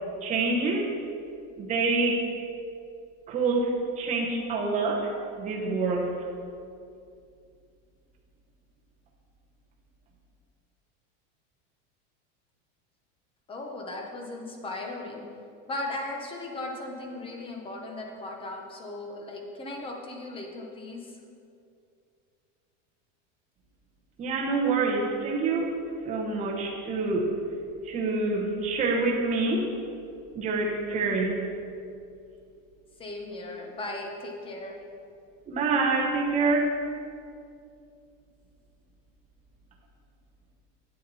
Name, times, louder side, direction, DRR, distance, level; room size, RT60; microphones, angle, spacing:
voice 1, 0.2-0.9 1.6-2.2 3.3-5.1 5.4-6.1 24.2-25.7 26.0-27.3 27.8-29.7 30.3-31.4 35.5-36.7, right 3 dB, 20° right, -2 dB, 1.0 m, -26 dB
voice 2, 13.5-15.3 15.7-21.2 33.0-34.8, left 2 dB, 15° left, 1 dB, 1.0 m, -37 dB
9.2 x 8.4 x 4.1 m, 2.4 s
supercardioid pair, 160°, 36 cm